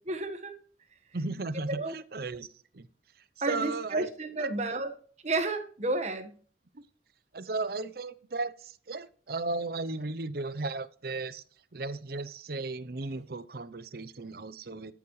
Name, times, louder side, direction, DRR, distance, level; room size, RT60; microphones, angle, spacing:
voice 1, 0.1-0.5 1.7-1.9 3.4-4.9 5.2-6.3, right 2 dB, 40° right, 7 dB, 1.4 m, -31 dB
voice 2, 1.1-2.5 2.7-2.9 3.5-4.1 4.4-4.8 7.3-11.4 11.7-14.9, right 3 dB, 55° right, 14 dB, 0.7 m, -35 dB
13.5 x 7.1 x 3.2 m, 0.43 s
head